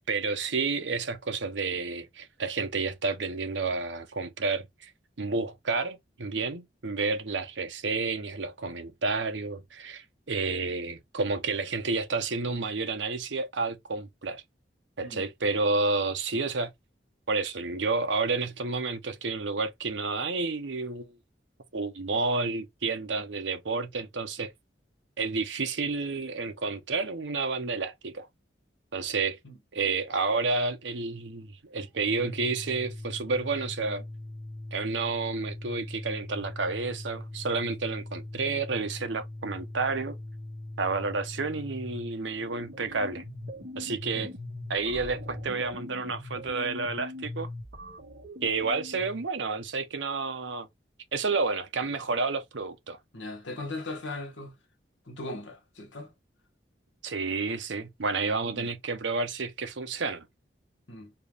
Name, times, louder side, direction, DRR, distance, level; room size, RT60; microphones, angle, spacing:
voice 1, 0.1-4.9 5.2-14.4 15.0-16.7 17.3-21.2 21.7-24.5 25.2-28.3 28.9-29.4 29.7-34.0 34.7-40.2 40.8-43.2 43.8-44.3 44.7-47.5 48.4-50.7 51.1-53.0 57.0-60.3, right 4 dB, 85° right, 0.9 m, -30 dB
voice 2, 15.0-15.3 29.4-29.6 44.1-44.3 53.1-54.5 55.1-56.1 58.4-58.7 60.9-61.1, left 2 dB, 90° left, 1.5 m, -39 dB
Organ, 31.9-42.3, left 1 dB, 15° left, 1.0 m, -41 dB
sound 1, 42.2-49.3, left 1 dB, 60° right, 1.8 m, -41 dB
4.6 x 2.6 x 3.3 m
head